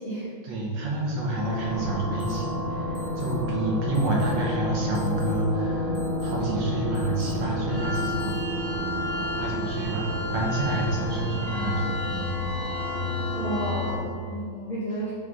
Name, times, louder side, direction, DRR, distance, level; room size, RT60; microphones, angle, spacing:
voice 1, 0.4-8.3 9.3-11.9 13.1-13.3, right 2 dB, 70° right, -2 dB, 1.8 m, -29 dB
sound 1, 1.3-14.0, left 1 dB, 50° right, 1.2 m, -30 dB
sound 2, 1.6-12.6, right 3 dB, 85° right, 2.0 m, -39 dB
sound 3, 2.2-2.3 2.9-3.3 3.9-4.3 4.9-5.3 5.9-6.3 6.9-7.3 7.9-8.3, left 4 dB, 65° left, 1.0 m, -48 dB
voice 2, 13.3-15.1, right 1 dB, 80° left, -9 dB, 0.7 m, -32 dB
7.7 x 3.4 x 3.7 m, 2.1 s
omnidirectional pair, 3.4 m